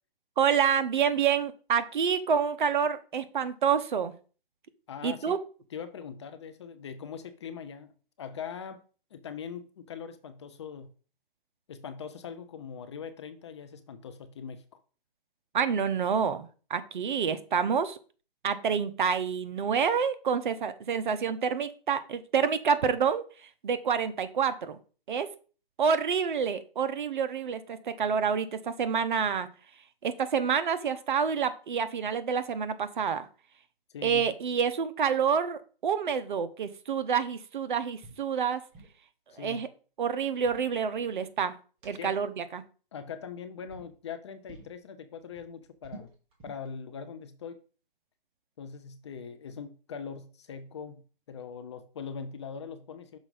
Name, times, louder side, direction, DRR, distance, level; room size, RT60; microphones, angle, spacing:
voice 1, 0.4-4.1 5.0-5.4 15.5-18.0 18.4-23.2 23.6-24.8 25.1-25.3 25.8-29.5 30.0-33.3 34.0-38.6 39.4-39.7 40.0-41.5 41.8-42.6, right 7 dB, 55° right, 0.8 m, -28 dB
voice 2, 4.9-5.4 5.7-7.9 8.2-8.8 9.1-10.9 11.7-14.8 33.9-34.3 39.3-39.6 41.9-42.1 42.9-46.1 46.4-47.6 48.6-53.2, left 6 dB, 30° left, 0.5 m, -41 dB
sound 1, 38.0-38.2 38.5-39.0 40.1-41.4 41.8-41.9 43.0-43.3 43.7-43.9 44.5-44.8 45.1-46.7, right 3 dB, 20° right, 1.4 m, -50 dB
6.1 x 4.3 x 3.9 m
hypercardioid pair, 145°, 29 cm